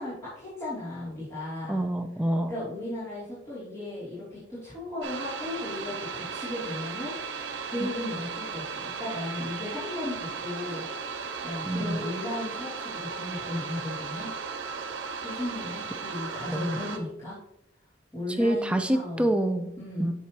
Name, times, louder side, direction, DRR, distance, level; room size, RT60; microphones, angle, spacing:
voice 1, 0.0-1.8 2.5-7.1 7.6-14.3 15.2-17.4 18.1-19.3 19.8-20.1, left 1 dB, 15° left, -13 dB, 2.7 m, -36 dB
voice 2, 1.7-2.5 7.8-7.9 11.7-12.0 16.5-16.7 18.4-19.7 20.0-20.1, right 1 dB, 5° right, 7 dB, 0.4 m, -26 dB
sound 1, 5.0-17.0, right 5 dB, 70° right, 0.8 m, -36 dB
8.5 x 6.1 x 2.9 m, 0.81 s
head